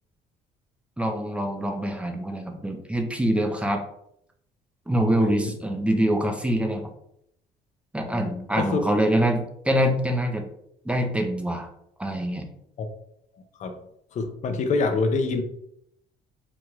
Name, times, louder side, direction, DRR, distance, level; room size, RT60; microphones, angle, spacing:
voice 1, 1.0-3.8 4.9-6.9 7.9-10.4 10.9-11.7 12.0-12.5, right 1 dB, 5° right, 3 dB, 0.4 m, -25 dB
voice 2, 8.1-8.8 13.6-13.8 14.1-15.4, left 3 dB, 45° left, 6 dB, 0.5 m, -26 dB
3.0 x 2.2 x 2.9 m, 0.75 s
cardioid pair, 110°, 17 cm